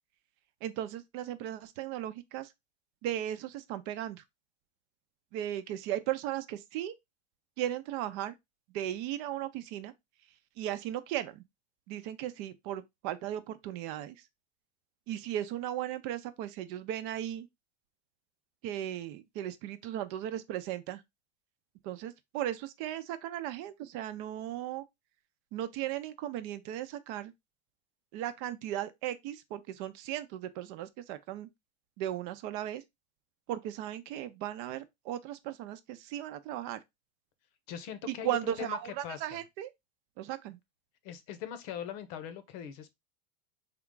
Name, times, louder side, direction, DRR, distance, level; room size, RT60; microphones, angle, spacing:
voice 1, 0.6-2.5 3.0-4.2 5.3-7.0 7.6-8.3 8.7-9.9 10.6-11.4 11.9-14.2 15.1-17.5 18.6-21.0 21.8-24.8 25.5-27.3 28.1-31.5 32.0-32.8 33.5-36.8 38.1-39.7 40.2-40.6, right 12 dB, 55° right, 0.6 m, -36 dB
voice 2, 37.7-39.4 41.0-42.9, left 9 dB, 55° left, 0.8 m, -41 dB
3.7 x 2.3 x 3.7 m
supercardioid pair, 120°, 37 cm